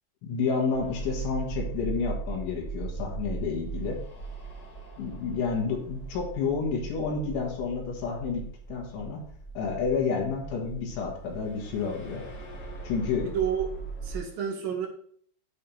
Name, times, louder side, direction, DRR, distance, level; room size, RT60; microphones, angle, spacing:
voice 1, 0.2-4.0 5.0-9.2 9.6-12.2 12.8-13.3, left 5 dB, 75° left, -1 dB, 3.9 m, -30 dB
sound 1, 0.7-14.2, right 5 dB, 35° left, 1.3 m, -39 dB
voice 2, 13.2-13.7 14.0-14.9, right 8 dB, 75° right, 1 dB, 2.8 m, -30 dB
8.4 x 3.3 x 5.6 m, 0.62 s
omnidirectional pair, 5.7 m